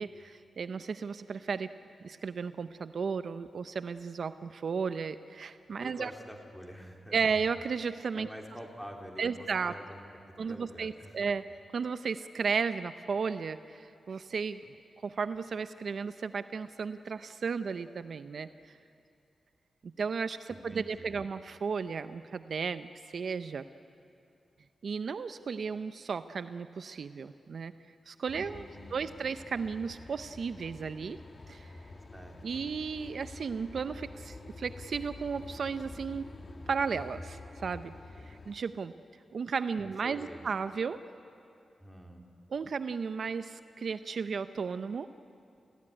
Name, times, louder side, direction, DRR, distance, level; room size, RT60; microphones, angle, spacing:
voice 1, 0.0-1.7 2.0-6.1 7.1-8.3 9.2-9.7 10.4-11.4 11.7-14.6 15.0-18.7 19.8-22.9 23.1-23.6 24.8-27.7 28.1-28.6 28.9-31.2 31.5-31.7 32.4-36.2 36.7-37.9 38.2-38.9 39.3-41.0 42.5-45.1, right 5 dB, 60° right, 11 dB, 0.6 m, -34 dB
voice 2, 5.8-7.4 8.1-11.2 20.5-21.2 28.3-29.1 32.1-32.6 39.8-40.5 41.8-42.2, equal, 5° left, 1 dB, 3.5 m, -47 dB
sound 1, 28.3-38.6, left 2 dB, 40° left, 1.5 m, -48 dB
29.5 x 16.0 x 9.9 m, 2.6 s
wide cardioid pair, 95°, 0 cm